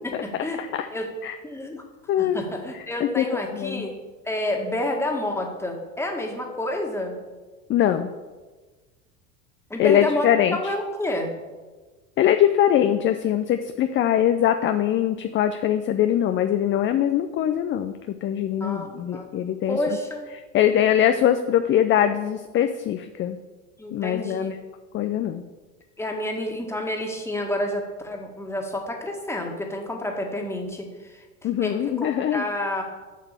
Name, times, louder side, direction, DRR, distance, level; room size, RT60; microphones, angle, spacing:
voice 1, 0.0-0.6 0.9-1.1 1.4-1.8 2.2-3.9 4.3-7.1 9.7-11.3 18.6-19.3 19.7-20.3 23.8-24.5 26.0-31.2 31.6-32.8, left 1 dB, 5° left, 1 dB, 1.8 m, -29 dB
voice 2, 2.1-2.4 3.0-3.9 7.7-8.1 9.8-10.7 12.2-17.9 18.2-19.8 20.5-23.4 23.9-24.6 24.9-25.4 31.4-32.4, left 10 dB, 30° left, 9 dB, 0.5 m, -22 dB
7.5 x 5.8 x 6.9 m, 1.3 s
hypercardioid pair, 85°, 39 cm